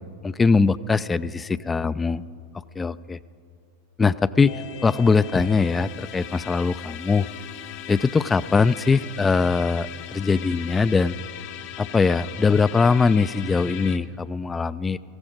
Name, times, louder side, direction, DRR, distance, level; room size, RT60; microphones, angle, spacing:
voice 1, 0.2-2.2 2.8-3.2 4.0-7.3 7.9-11.2 11.8-15.0, left 4 dB, 15° left, 17 dB, 0.3 m, -21 dB
sound 1, 4.4-14.0, left 11 dB, 45° left, 0.8 m, -39 dB
17.5 x 15.0 x 5.2 m, 2.4 s
figure-of-eight pair, 90°, 0 cm